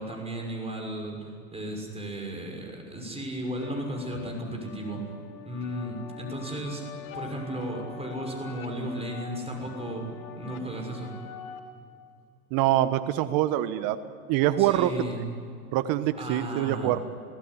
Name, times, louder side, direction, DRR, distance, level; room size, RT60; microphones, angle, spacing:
voice 1, 0.0-5.0 5.4-6.8 7.1-10.1 10.3-11.1 14.6-15.3 16.2-16.9, right 1 dB, 15° right, 1 dB, 6.3 m, -35 dB
sound 1, 3.6-11.6, left 7 dB, 75° left, 4.4 m, -44 dB
voice 2, 12.5-14.0 14.3-14.9 15.7-17.0, right 13 dB, 55° right, 12 dB, 1.3 m, -24 dB
29.0 x 17.0 x 9.9 m, 2.4 s
hypercardioid pair, 90°, 42 cm